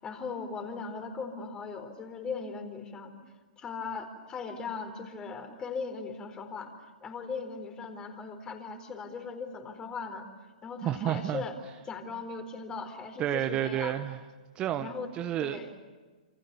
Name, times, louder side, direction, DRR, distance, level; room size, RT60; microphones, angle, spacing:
voice 1, 0.0-3.1 3.6-6.7 7.0-10.3 10.6-11.5 11.8-14.0 14.8-15.1 15.4-15.7, left 5 dB, 20° left, 6 dB, 4.3 m, -38 dB
voice 2, 10.8-11.4 13.2-14.2 14.5-15.7, right 11 dB, 25° right, 9 dB, 1.1 m, -30 dB
29.0 x 28.0 x 7.1 m, 1.4 s
figure-of-eight pair, 110°, 4 cm